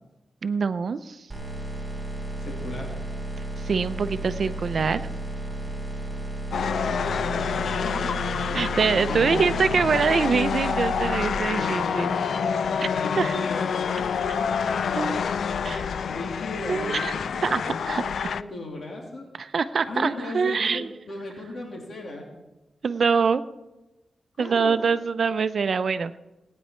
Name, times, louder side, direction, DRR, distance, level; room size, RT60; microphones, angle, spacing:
voice 1, 0.4-1.3 3.6-5.1 8.5-12.1 13.1-13.3 14.9-15.2 15.6-15.8 16.7-17.1 17.4-17.6 17.9-18.0 19.4-20.9 22.8-23.4 24.4-26.2, right 5 dB, 60° right, 12 dB, 0.6 m, -24 dB
sound 1, 1.3-11.4, right 2 dB, 20° right, 4.2 m, -33 dB
voice 2, 2.4-2.9 6.9-8.1 8.4-8.6 8.9-9.4 11.5-19.2 19.8-22.2 24.4-24.8, left 2 dB, 60° left, -1 dB, 2.8 m, -37 dB
sound 2, 6.5-18.4, left 6 dB, 80° left, 0.4 m, -27 dB
18.5 x 9.5 x 4.4 m, 1.1 s
cardioid pair, 85°, 0 cm